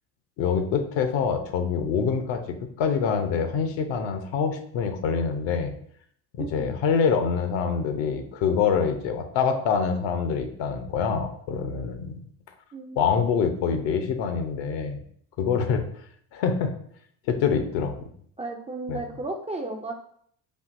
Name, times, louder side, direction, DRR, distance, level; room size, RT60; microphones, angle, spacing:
voice 1, 0.4-2.4 2.8-5.7 6.3-12.1 13.0-15.0 15.4-15.8 16.3-16.7 17.3-17.9 18.9-19.0, left 6 dB, 60° left, 7 dB, 0.8 m, -25 dB
voice 2, 6.4-6.7 12.7-13.0 18.4-19.9, right 2 dB, 15° right, 1 dB, 0.4 m, -34 dB
4.5 x 2.7 x 2.5 m, 0.63 s
hypercardioid pair, 65°, 50 cm